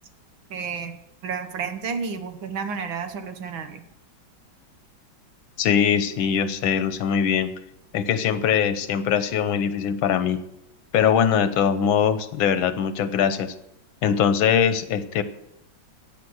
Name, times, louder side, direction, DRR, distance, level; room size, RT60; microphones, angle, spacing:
voice 1, 0.5-3.8, right 6 dB, 80° right, 8 dB, 2.0 m, -31 dB
voice 2, 5.6-7.5 7.9-10.4 10.9-13.5 14.0-15.2, left 8 dB, 85° left, 11 dB, 1.7 m, -22 dB
15.5 x 9.1 x 6.3 m, 0.84 s
omnidirectional pair, 2.1 m